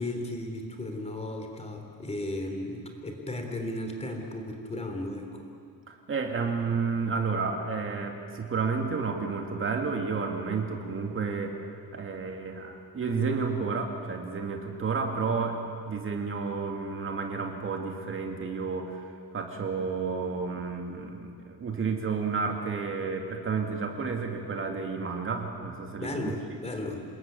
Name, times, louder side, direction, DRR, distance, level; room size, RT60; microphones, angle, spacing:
voice 1, 0.0-5.5 26.0-27.0, left 1 dB, 20° left, 3 dB, 3.5 m, -35 dB
voice 2, 5.9-11.5 11.9-15.6 15.9-26.3, right 5 dB, 35° right, 2 dB, 2.6 m, -31 dB
28.0 x 21.0 x 9.4 m, 2.2 s
cardioid pair, 155°, 34 cm